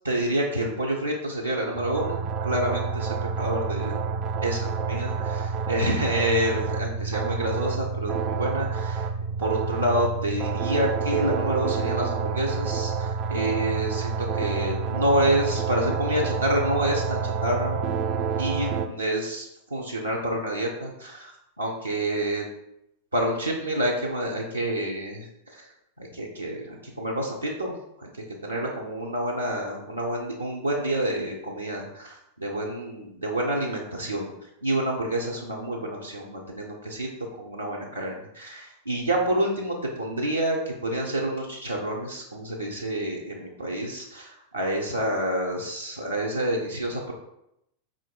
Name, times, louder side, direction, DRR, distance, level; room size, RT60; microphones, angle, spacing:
voice 1, 0.0-4.2 4.4-9.1 9.4-17.8 18.4-22.5 23.1-25.7 26.1-34.3 34.6-37.1 37.4-47.1, right 1 dB, 80° right, -2 dB, 0.5 m, -28 dB
sound 1, 1.7-18.9, right 5 dB, 35° right, 0.3 m, -28 dB
4.5 x 3.7 x 2.2 m, 0.81 s
figure-of-eight pair, 90°, 0 cm